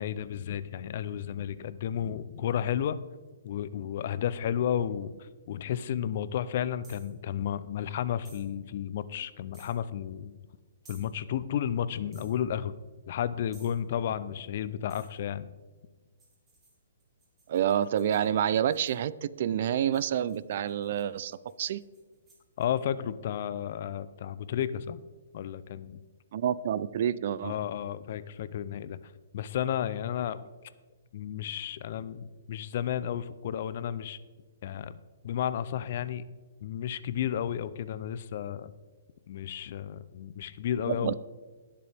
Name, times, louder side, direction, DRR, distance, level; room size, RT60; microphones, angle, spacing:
voice 1, 0.0-3.0 3.4-10.4 10.9-12.7 13.1-15.5 22.6-25.0 25.3-26.0 27.4-29.0 29.3-30.5 31.1-34.2 34.6-35.0 35.2-36.2 36.6-38.7 39.3-41.1, left 9 dB, 50° left, 15 dB, 0.6 m, -32 dB
sound 1, 6.8-7.1 8.2-8.5 9.5-9.8 10.8-11.1 12.1-12.4 13.5-13.8 14.9-15.2 16.2-19.0 19.6-22.7, right 2 dB, 15° right, 3.1 m, -58 dB
voice 2, 17.5-21.8 26.3-27.5 40.9-41.1, right 9 dB, 50° right, 18 dB, 0.4 m, -28 dB
18.5 x 6.8 x 3.5 m, 1.3 s
hypercardioid pair, 155°, 0 cm